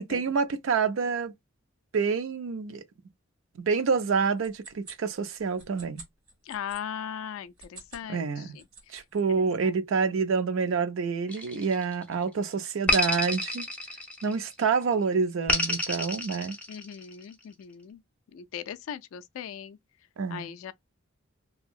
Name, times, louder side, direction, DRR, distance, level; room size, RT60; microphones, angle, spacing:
voice 1, 0.0-1.3 1.9-2.8 3.6-6.0 8.1-8.6 8.9-13.7 14.2-16.6 20.2-20.5, right 5 dB, 65° right, 0.4 m, -27 dB
sound 1, 4.0-6.8 7.5-8.1 8.4-9.2, right 3 dB, 85° right, 1.7 m, -49 dB
voice 2, 6.4-9.0 9.3-9.8 16.7-18.0 18.3-19.8 20.3-20.7, left 8 dB, 80° left, 0.3 m, -39 dB
sound 2, 11.3-12.1 12.9-14.5 15.5-17.1, left 2 dB, 5° left, 0.6 m, -29 dB
2.8 x 2.7 x 2.3 m
head